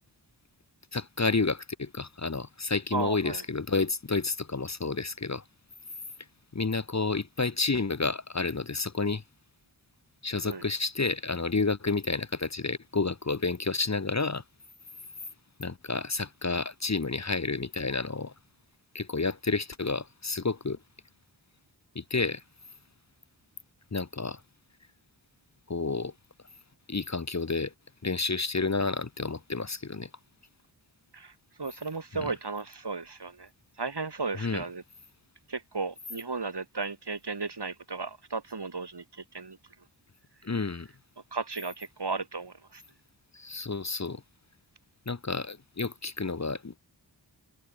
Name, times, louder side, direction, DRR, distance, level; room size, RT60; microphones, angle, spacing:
voice 1, 0.9-5.4 6.5-9.2 10.2-14.4 15.6-18.3 18.9-20.8 21.9-22.4 23.9-24.4 25.7-26.1 26.9-27.7 28.0-30.1 32.2-32.3 34.4-34.6 40.4-40.9 43.3-44.2 45.1-46.8, left 3 dB, 40° left, 1.4 m, -30 dB
voice 2, 2.9-3.4 10.4-10.7 31.1-31.3 31.6-33.5 33.8-34.8 35.5-39.6 41.3-42.8, right 4 dB, 65° right, 7.1 m, -35 dB
wide cardioid pair, 75°, 43 cm